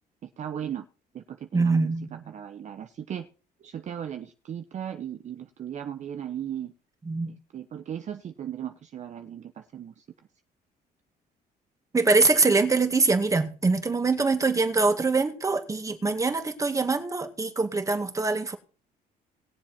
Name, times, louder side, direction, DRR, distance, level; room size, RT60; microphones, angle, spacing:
voice 1, 0.2-0.9 1.1-3.3 3.6-6.7 7.3-10.0, right 9 dB, 45° right, 0.9 m, -37 dB
voice 2, 1.5-2.0 7.1-7.3 11.9-18.6, right 3 dB, 20° right, 2.1 m, -23 dB
19.0 x 7.4 x 4.4 m
cardioid pair, 110°, 17 cm